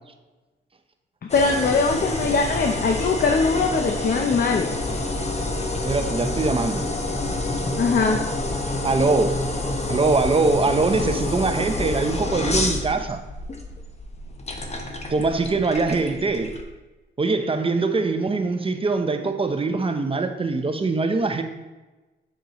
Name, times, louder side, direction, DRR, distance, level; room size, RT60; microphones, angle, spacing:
voice 1, 1.3-4.7 7.7-8.2, left 4 dB, 50° left, 3 dB, 0.7 m, -21 dB
sound 1, 1.3-16.6, left 2 dB, 35° left, 1.0 m, -28 dB
voice 2, 5.8-6.9 8.8-9.4 9.9-13.2 15.1-16.5 17.2-21.4, right 3 dB, 30° right, 7 dB, 0.7 m, -22 dB
7.8 x 6.4 x 3.1 m, 1.2 s
cardioid pair, 85°, 19 cm